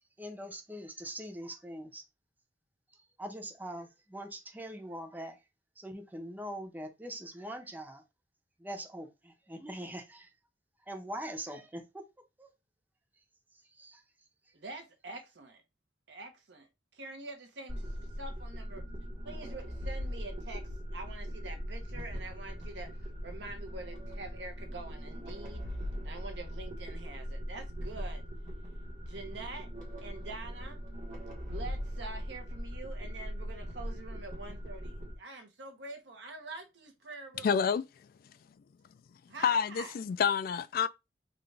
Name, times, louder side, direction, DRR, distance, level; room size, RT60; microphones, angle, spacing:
voice 1, 0.2-2.0 3.2-5.4 5.8-8.0 8.6-10.3 10.9-12.0 12.4-12.5 13.8-14.0, right 1 dB, 10° right, 0.6 m, -42 dB
voice 2, 14.5-15.6 16.1-18.8 19.2-20.6 20.9-25.6 26.0-28.2 29.0-29.7 30.0-30.8 31.4-37.6 39.3-40.0, right 2 dB, 75° right, 1.1 m, -46 dB
sound 1, 17.7-35.1, equal, 45° right, 1.4 m, -40 dB
voice 3, 37.4-37.8 39.4-40.9, left 7 dB, 55° left, 0.3 m, -28 dB
3.8 x 2.5 x 3.4 m
head